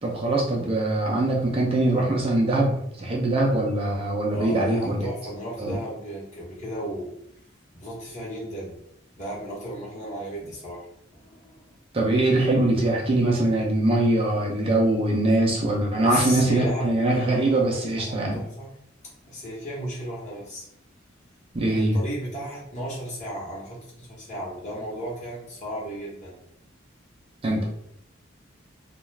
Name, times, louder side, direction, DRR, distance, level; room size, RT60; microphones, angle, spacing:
voice 1, 0.0-5.1 5.6-5.7 11.9-18.4 21.5-22.0 27.4-27.7, right 2 dB, 30° right, -2 dB, 0.5 m, -22 dB
voice 2, 4.3-7.1 7.7-8.8 9.2-10.9 11.1-11.7 16.0-18.7 19.0-20.7 21.7-26.4, equal, 40° left, -5 dB, 1.0 m, -35 dB
2.4 x 2.2 x 3.1 m, 0.73 s
head